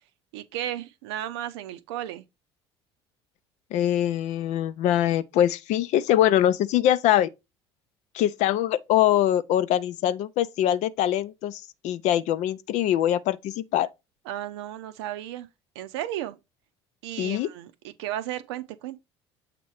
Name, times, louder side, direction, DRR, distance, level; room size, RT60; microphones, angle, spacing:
voice 1, 0.3-2.2 14.3-15.5 15.7-16.4 17.0-19.0, right 12 dB, 75° right, 0.6 m, -34 dB
voice 2, 3.7-7.3 8.1-13.9 17.2-17.5, left 11 dB, 55° left, 0.5 m, -23 dB
7.4 x 2.9 x 4.8 m
hypercardioid pair, 60°, 14 cm